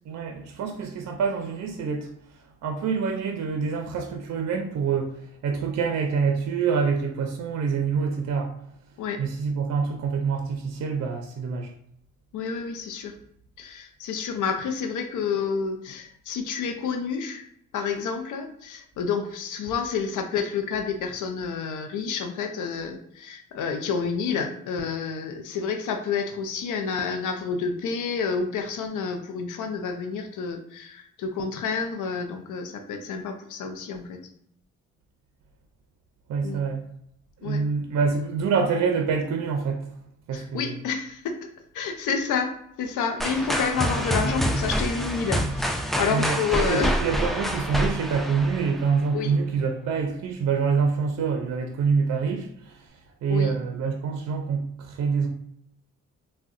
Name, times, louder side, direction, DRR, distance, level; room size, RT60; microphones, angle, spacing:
voice 1, 0.1-2.1 2.6-8.6 9.2-11.7 36.3-36.9 37.4-39.9 40.3-40.8 46.1-52.9 53.2-55.3, right 5 dB, 60° right, 4 dB, 0.5 m, -26 dB
voice 2, 12.3-13.1 13.6-17.4 17.7-34.2 36.4-36.6 37.4-37.6 40.3-41.4 41.7-46.9 49.1-49.3 53.3-53.5, left 5 dB, 75° left, 5 dB, 0.5 m, -29 dB
sound 1, 43.2-49.1, equal, ahead, 0.3 m, -27 dB
3.5 x 2.2 x 2.5 m, 0.73 s
cardioid pair, 65°, 31 cm